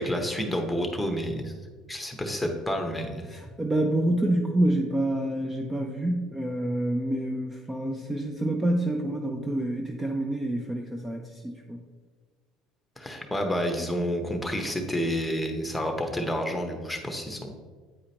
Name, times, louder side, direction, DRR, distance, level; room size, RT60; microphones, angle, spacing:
voice 1, 0.0-1.5 1.9-3.3 13.0-17.5, equal, 5° left, 3 dB, 1.0 m, -29 dB
voice 2, 3.3-11.8, right 1 dB, 15° right, 3 dB, 0.5 m, -27 dB
8.7 x 4.8 x 2.9 m, 1.5 s
supercardioid pair, 110°, 0 cm